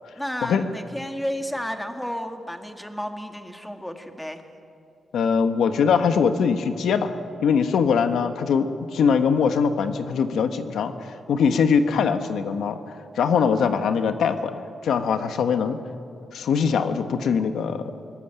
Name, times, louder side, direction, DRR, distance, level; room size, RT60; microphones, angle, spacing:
voice 1, 0.2-4.4, equal, 5° left, 5 dB, 1.9 m, -32 dB
voice 2, 5.1-7.1 7.4-15.8 16.3-17.9, left 6 dB, 85° left, 8 dB, 1.3 m, -22 dB
22.5 x 19.0 x 8.9 m, 2.5 s
cardioid pair, 110°, 0 cm